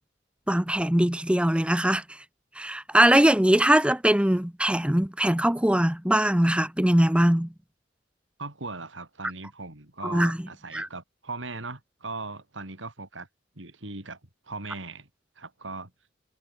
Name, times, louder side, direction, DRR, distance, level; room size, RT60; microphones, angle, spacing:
voice 1, 0.5-2.2 2.6-7.5 10.0-10.4 10.7-10.9, right 1 dB, 5° right, 0.9 m, -21 dB
voice 2, 8.4-13.3 13.6-14.2 14.5-15.1 15.4-15.9, right 3 dB, 75° right, 4.0 m, -39 dB
head